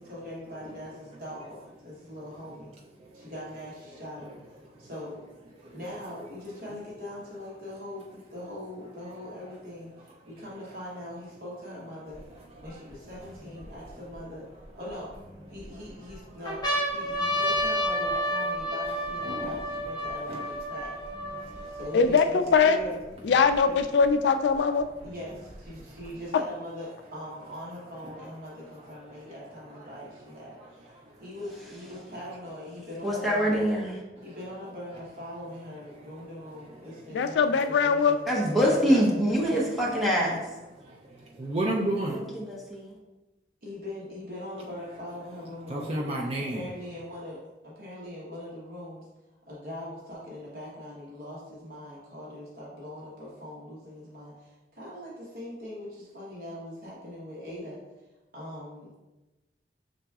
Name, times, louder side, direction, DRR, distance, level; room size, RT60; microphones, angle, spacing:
voice 1, 0.0-2.7 3.1-5.2 5.7-12.2 12.6-14.4 14.7-15.1 15.5-20.9 21.7-22.4 22.6-23.0 23.6-23.8 25.0-30.9 31.2-33.6 34.2-38.3 38.8-39.0 43.6-46.0 46.4-49.1 49.5-57.8 58.3-58.9, left 1 dB, 50° right, -7 dB, 1.0 m, -41 dB
sound 1, 12.1-12.2 12.9-14.2 14.9-15.6 16.1-16.2 16.4-22.1 22.8-22.9 23.0-24.1 25.0-26.0, equal, 25° left, 0.9 m, -31 dB
voice 2, 19.3-19.6 20.3-20.4 21.4-21.8 28.2-28.3 28.7-28.8 29.8-29.9 31.0-31.2 40.8-42.2 45.6-46.7, right 1 dB, 35° right, -3 dB, 0.4 m, -32 dB
voice 3, 21.9-22.8 23.2-24.9 26.3-26.4 37.1-38.2, left 5 dB, 75° left, 9 dB, 0.3 m, -22 dB
voice 4, 33.0-33.9 38.3-40.4 42.1-42.6, equal, ahead, -5 dB, 0.9 m, -24 dB
5.6 x 3.9 x 2.3 m, 1.1 s
head